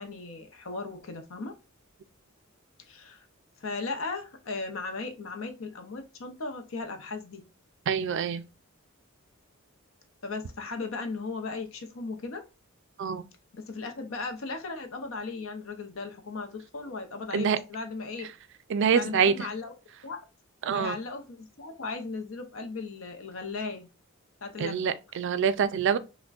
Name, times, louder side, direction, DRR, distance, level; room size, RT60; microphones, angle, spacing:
voice 1, 0.0-1.5 2.9-3.3 3.6-7.4 10.2-12.4 13.5-18.3 18.9-19.7 20.0-20.2 20.7-23.9 24.4-24.8, left 3 dB, 65° left, 0.7 m, -37 dB
voice 2, 7.9-8.4 13.0-13.2 17.3-17.6 18.7-19.5 20.7-21.0 24.6-26.0, right 6 dB, 60° right, 0.4 m, -25 dB
5.8 x 2.2 x 2.4 m
head